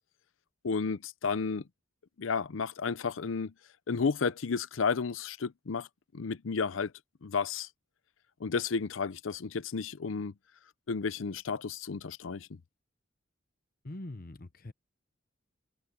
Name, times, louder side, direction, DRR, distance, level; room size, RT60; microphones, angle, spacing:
voice 1, 0.6-1.6 2.2-3.5 3.9-5.9 6.1-6.9 7.2-7.7 8.4-10.3 10.9-12.6, left 5 dB, 85° left, 0.6 m, -32 dB
voice 2, 13.8-14.7, left 1 dB, 50° left, 1.0 m, -43 dB
head